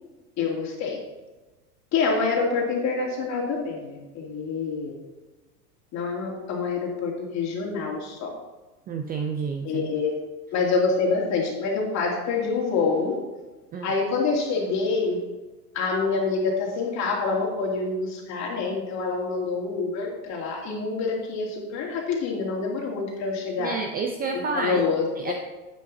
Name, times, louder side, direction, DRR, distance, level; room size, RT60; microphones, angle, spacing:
voice 1, 0.4-1.0 1.9-4.9 5.9-8.3 9.6-10.2 10.5-13.1 13.8-15.2 15.7-23.8 24.5-25.3, left 4 dB, 35° left, -2 dB, 2.8 m, -26 dB
voice 2, 8.9-9.9 13.7-13.9 23.6-24.8 25.2-25.3, right 4 dB, 20° right, 4 dB, 0.5 m, -29 dB
10.0 x 8.6 x 2.8 m, 1.1 s
hypercardioid pair, 115°, 48 cm